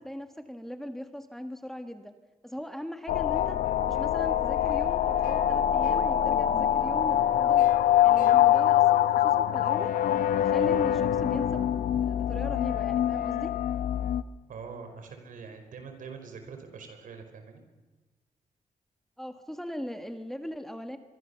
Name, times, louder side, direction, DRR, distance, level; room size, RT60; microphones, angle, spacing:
voice 1, 0.0-2.1 2.4-3.6 3.9-7.7 8.0-9.9 10.3-13.5 19.2-21.0, equal, ahead, 7 dB, 1.6 m, -39 dB
sound 1, 3.1-14.2, left 11 dB, 85° left, 0.9 m, -24 dB
voice 2, 14.5-17.6, right 5 dB, 75° right, 6 dB, 5.0 m, -44 dB
24.0 x 24.0 x 7.0 m, 1.2 s
cardioid pair, 110°, 14 cm